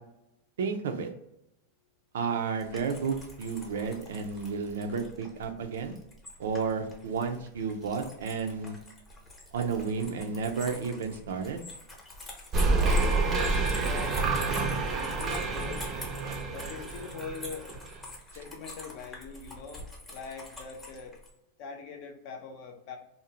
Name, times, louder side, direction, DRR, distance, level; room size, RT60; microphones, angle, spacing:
voice 1, 0.6-1.1 2.1-6.0 6.4-8.8 9.5-11.6 16.2-16.4, right 5 dB, 85° right, 6 dB, 0.4 m, -32 dB
sound 1, 2.6-21.3, left 1 dB, 15° left, 0.7 m, -46 dB
sound 2, 12.5-18.0, right 3 dB, 25° right, 0.4 m, -28 dB
voice 2, 12.7-15.9 16.5-17.7 18.3-21.2 21.6-23.0, left 5 dB, 50° left, 3 dB, 0.6 m, -42 dB
2.5 x 2.0 x 2.9 m, 0.82 s
supercardioid pair, 140°, 0 cm